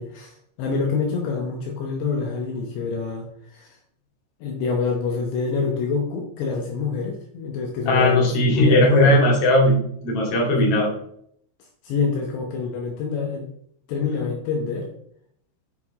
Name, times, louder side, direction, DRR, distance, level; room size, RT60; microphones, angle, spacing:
voice 1, 0.0-3.3 3.5-3.8 4.4-9.2 10.5-10.7 11.8-13.5 13.9-14.9, left 5 dB, 75° left, 1 dB, 3.0 m, -26 dB
voice 2, 7.9-10.9, left 1 dB, 40° left, -4 dB, 2.5 m, -18 dB
8.4 x 6.5 x 3.6 m, 0.68 s
omnidirectional pair, 5.6 m